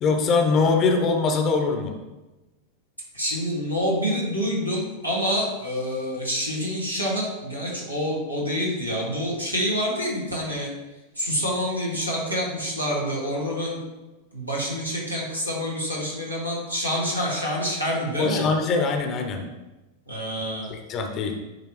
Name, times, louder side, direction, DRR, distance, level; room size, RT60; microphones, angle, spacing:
voice 1, 0.0-1.9 18.2-19.5 20.7-21.4, left 4 dB, 30° left, 4 dB, 0.9 m, -22 dB
voice 2, 3.1-10.7 11.2-13.8 14.3-18.5 20.1-20.7, equal, 90° right, -5 dB, 2.0 m, -27 dB
9.9 x 3.3 x 3.2 m, 1.1 s
figure-of-eight pair, 90°, 0 cm